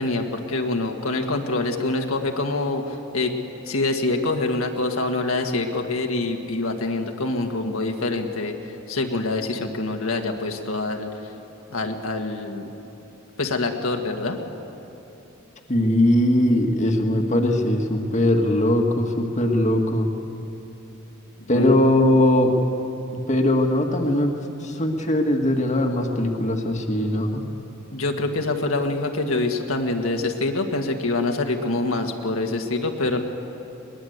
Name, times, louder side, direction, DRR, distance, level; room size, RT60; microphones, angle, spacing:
voice 1, 0.0-3.3 3.7-11.3 11.7-12.7 13.4-14.4 21.4-21.8 27.9-33.2, left 2 dB, 75° left, 3 dB, 1.7 m, -25 dB
voice 2, 15.7-20.1 21.5-22.5 23.1-24.3 24.6-27.4, left 1 dB, 35° left, 2 dB, 1.7 m, -20 dB
22.0 x 20.0 x 8.0 m, 3.0 s
head